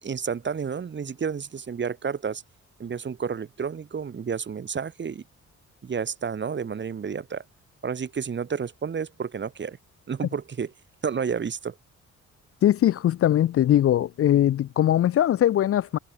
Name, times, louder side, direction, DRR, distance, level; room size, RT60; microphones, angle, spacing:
voice 1, 0.0-2.4 2.8-5.2 5.8-7.4 7.8-9.8 10.1-10.7 11.0-11.8, right 6 dB, 40° right, 1.8 m, -30 dB
voice 2, 12.6-16.0, left 11 dB, 50° left, 0.5 m, -21 dB
cardioid pair, 90°, 30 cm